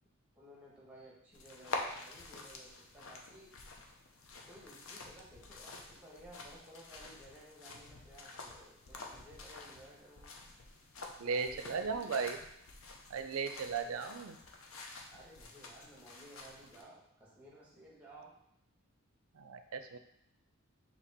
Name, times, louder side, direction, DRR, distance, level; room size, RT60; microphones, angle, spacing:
voice 1, 0.4-3.6 4.5-10.2 11.2-12.3 13.6-14.2 15.1-18.3, right 1 dB, 5° right, -5 dB, 1.1 m, -56 dB
sound 1, 1.3-16.8, left 3 dB, 70° left, 0.6 m, -48 dB
voice 2, 11.2-12.4 13.1-14.4 19.3-20.0, right 5 dB, 80° right, 8 dB, 0.4 m, -36 dB
4.3 x 2.8 x 4.0 m, 0.77 s
head